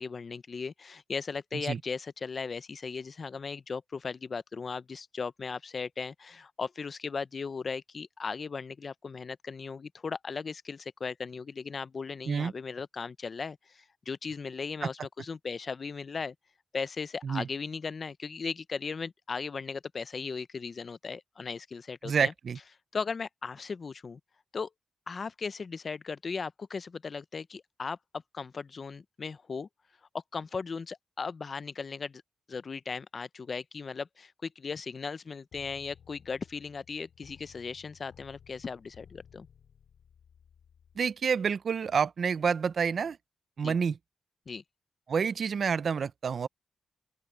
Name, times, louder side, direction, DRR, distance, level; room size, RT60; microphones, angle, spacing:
voice 1, 0.0-16.3 16.7-22.3 22.9-24.2 24.5-24.7 25.1-29.7 30.3-32.2 32.5-39.5 43.6-43.8 44.5-44.6, left 5 dB, 35° left, 0.4 m, -37 dB
voice 2, 22.0-22.6 41.0-43.2 43.6-44.0 45.1-46.5, right 6 dB, 50° right, 0.5 m, -28 dB
sound 1, 35.5-41.0, left 8 dB, 80° left, 5.3 m, -57 dB
open air
wide cardioid pair, 170°, 0 cm